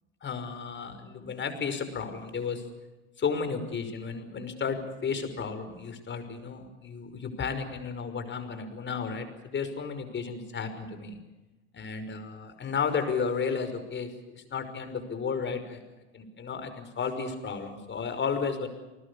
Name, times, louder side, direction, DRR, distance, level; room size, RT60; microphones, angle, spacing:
voice 1, 0.2-2.6 3.2-11.2 11.7-15.8 16.1-18.7, left 5 dB, 30° left, 8 dB, 5.8 m, -33 dB
30.0 x 20.0 x 7.0 m, 1.1 s
hypercardioid pair, 90°, 37 cm